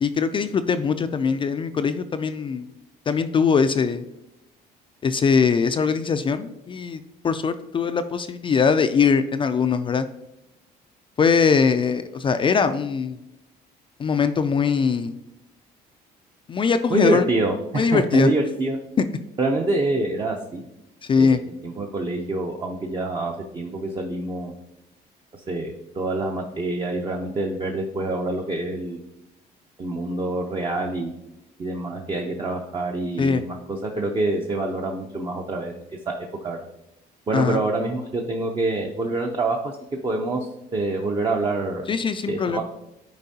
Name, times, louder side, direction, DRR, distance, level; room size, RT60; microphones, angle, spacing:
voice 1, 0.0-2.7 3.1-4.1 5.0-10.1 11.2-13.2 14.0-15.1 16.5-17.3 17.8-18.3 19.0-19.1 21.1-21.4 33.2-33.4 37.3-37.6 41.9-42.6, left 5 dB, 30° left, 9 dB, 0.3 m, -21 dB
voice 2, 16.9-18.8 19.4-20.6 21.2-21.4 21.6-24.5 25.5-29.0 29.8-31.1 31.6-35.7 36.1-36.6 37.3-39.7 40.0-41.8 42.3-42.6, right 2 dB, 30° right, 1 dB, 0.7 m, -26 dB
10.5 x 4.5 x 2.8 m, 0.88 s
cardioid pair, 110°, 17 cm